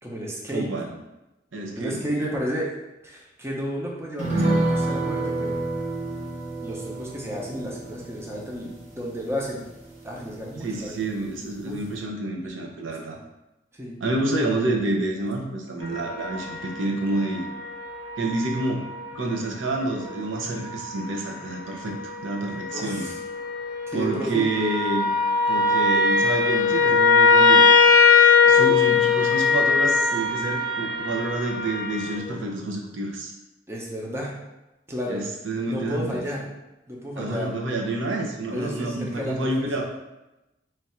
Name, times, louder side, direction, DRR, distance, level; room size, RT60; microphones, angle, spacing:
voice 1, 0.0-0.7 1.8-2.7 3.0-5.6 6.6-9.7 10.0-11.1 11.7-11.8 13.7-14.0 22.7-23.2 23.9-24.6 33.7-34.3 34.9-35.2 35.6-36.5 36.9-37.5 38.5-39.5, equal, 15° right, -3 dB, 0.5 m, -32 dB
voice 2, 0.5-0.9 1.5-2.2 10.6-13.2 14.0-17.5 18.2-23.1 23.9-25.1 25.5-27.6 28.4-33.3 35.1-36.3 37.2-39.8, right 2 dB, 90° right, 1 dB, 0.6 m, -28 dB
sound 1, 4.2-11.0 11.3-11.4 11.7-11.9, right 2 dB, 40° right, 0.8 m, -29 dB
sound 2, 15.8-19.0 20.1-20.2 20.6-21.0 21.7-22.1 22.4-32.2, left 4 dB, 45° left, 0.5 m, -21 dB
3.2 x 2.4 x 4.2 m, 0.99 s
head